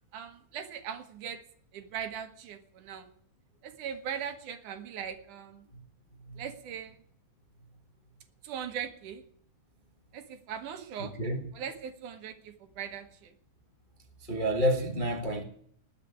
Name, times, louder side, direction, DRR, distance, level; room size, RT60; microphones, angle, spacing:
voice 1, 0.1-1.4 1.7-3.1 3.6-5.7 6.4-7.0 8.4-9.2 10.1-11.1 11.5-13.3, right 8 dB, 70° right, 8 dB, 2.8 m, -40 dB
voice 2, 11.0-11.4 14.3-15.4, equal, 30° left, 2 dB, 0.8 m, -29 dB
20.0 x 6.7 x 9.4 m, 0.63 s
omnidirectional pair, 3.8 m